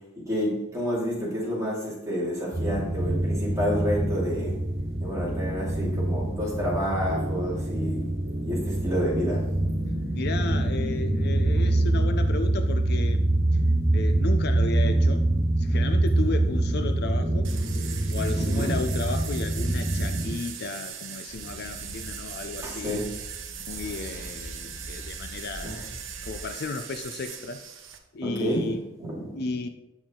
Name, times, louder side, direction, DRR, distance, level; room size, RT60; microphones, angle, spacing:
voice 1, 0.2-4.5 5.0-8.0 8.4-9.5 14.8-14.9 18.4-18.8 22.6-23.1 25.6-25.7 28.2-29.4, equal, 15° right, -6 dB, 2.7 m, -29 dB
sound 1, 2.5-20.3, right 1 dB, 50° right, 2.2 m, -25 dB
voice 2, 10.1-13.3 13.9-15.3 15.6-17.5 18.1-23.0 23.7-26.0 26.2-27.6 28.1-28.8 29.4-29.7, left 3 dB, 55° left, 8 dB, 0.5 m, -34 dB
sound 2, 17.4-28.0, right 8 dB, 65° right, 0.9 m, -40 dB
sound 3, 21.3-26.4, equal, 20° left, 2.2 m, -43 dB
8.5 x 6.1 x 3.8 m, 0.90 s
head